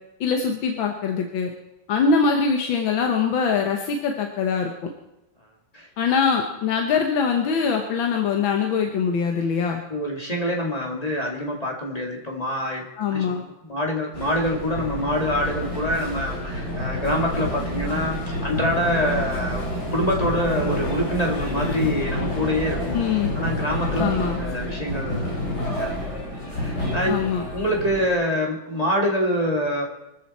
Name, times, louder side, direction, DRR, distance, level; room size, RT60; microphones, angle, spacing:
voice 1, 0.2-1.5 1.9-4.9 6.0-9.8 13.0-13.4 22.9-23.3 24.0-24.4 27.1-27.5, left 5 dB, 85° left, 3 dB, 1.9 m, -23 dB
voice 2, 9.9-13.3 13.6-19.7 19.9-23.0 23.3-25.4 25.7-26.0 26.5-29.9, equal, 20° left, -1 dB, 2.3 m, -26 dB
sound 1, 14.1-28.1, left 1 dB, 55° left, 5.2 m, -28 dB
24.0 x 13.5 x 4.3 m, 0.93 s
omnidirectional pair, 2.1 m